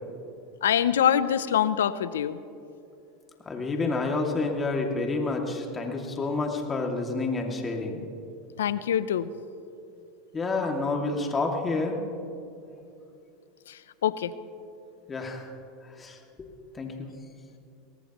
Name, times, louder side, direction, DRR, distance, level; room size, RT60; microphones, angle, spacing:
voice 1, 0.6-2.4 8.6-9.3 13.7-14.3, left 9 dB, 90° left, 15 dB, 0.5 m, -25 dB
voice 2, 3.5-8.0 10.3-12.0 15.1-15.5 16.0-16.5 16.7-17.1, left 3 dB, 20° left, 2 dB, 2.4 m, -29 dB
23.0 x 18.0 x 3.1 m, 2.6 s
hypercardioid pair, 110°, 0 cm